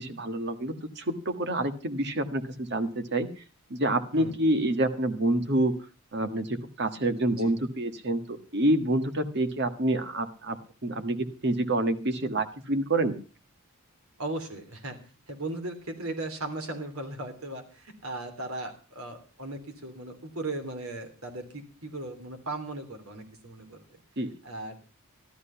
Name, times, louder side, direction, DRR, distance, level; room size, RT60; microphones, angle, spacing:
voice 1, 0.0-3.3 3.7-5.7 6.1-10.6 10.8-13.2 24.2-24.3, right 1 dB, 50° right, 8 dB, 1.6 m, -27 dB
voice 2, 14.2-15.0 15.3-24.0 24.4-24.8, right 2 dB, 75° right, 6 dB, 3.2 m, -37 dB
13.5 x 12.5 x 5.7 m, 0.37 s
head